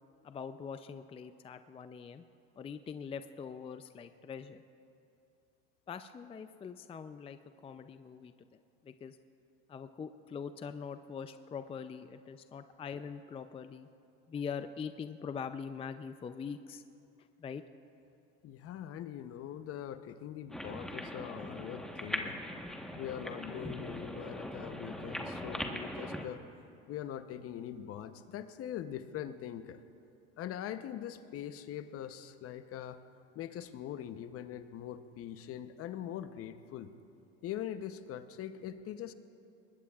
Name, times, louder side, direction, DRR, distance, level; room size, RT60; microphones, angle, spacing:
voice 1, 0.2-2.3 2.6-4.6 5.9-8.3 8.8-9.2 9.7-13.9 14.3-16.8 17.4-17.6, left 6 dB, 20° left, 10 dB, 0.4 m, -43 dB
voice 2, 18.4-22.4 22.9-26.4 26.9-29.8 30.4-33.0 33.3-36.9 37.4-39.1, left 10 dB, 50° left, 11 dB, 0.8 m, -42 dB
sound 1, 20.5-26.2, left 1 dB, ahead, 1.2 m, -40 dB
23.5 x 20.5 x 2.4 m, 2.6 s
supercardioid pair, 95°, 30 cm